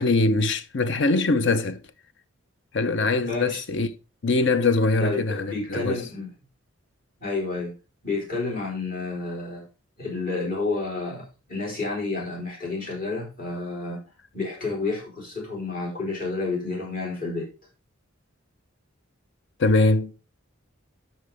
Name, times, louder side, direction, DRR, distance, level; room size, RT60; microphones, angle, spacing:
voice 1, 0.0-1.8 2.7-3.9 4.2-6.0 19.6-20.1, left 3 dB, 55° left, 0.7 m, -22 dB
voice 2, 3.2-3.6 5.0-6.3 7.2-7.7 8.0-9.6 10.0-14.0 14.3-17.5, left 3 dB, 40° left, 3.9 m, -30 dB
12.5 x 4.4 x 3.4 m
head